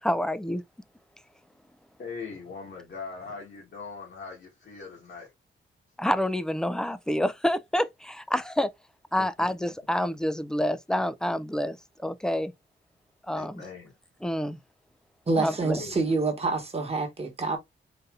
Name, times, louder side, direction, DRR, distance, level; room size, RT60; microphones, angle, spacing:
voice 1, 0.0-0.6 6.0-8.7 9.1-11.8 12.0-12.5 13.3-13.6 14.2-14.6 15.4-15.8, left 1 dB, 5° left, 0.3 m, -28 dB
voice 2, 2.0-5.3 9.2-9.5 13.3-13.9 15.8-16.0, left 5 dB, 60° left, 1.4 m, -41 dB
voice 3, 15.3-17.6, right 3 dB, 30° right, 1.2 m, -27 dB
4.1 x 2.6 x 3.5 m
wide cardioid pair, 170°, 20 cm